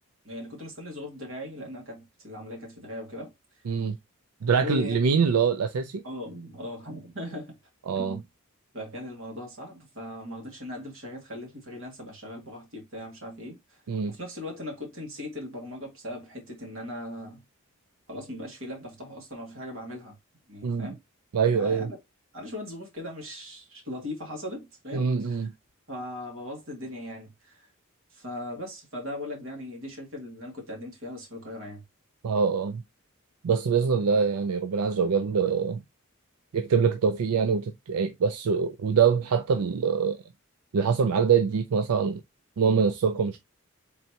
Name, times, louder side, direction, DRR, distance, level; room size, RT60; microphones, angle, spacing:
voice 1, 0.2-3.7 4.6-5.1 6.0-7.5 7.9-8.2 8.7-13.8 14.1-17.4 18.1-20.2 20.5-21.0 21.5-22.0 22.3-25.5 25.9-27.7 28.1-31.8, left 1 dB, 65° right, 2.1 m, -39 dB
voice 2, 3.7-4.0 4.4-6.0 7.9-8.2 13.9-14.1 20.6-20.9 21.3-21.9 24.9-25.5 32.2-32.8 33.4-35.8 36.5-40.2 40.7-42.2 42.6-43.4, right 6 dB, 90° right, 0.4 m, -24 dB
4.2 x 3.3 x 2.8 m
head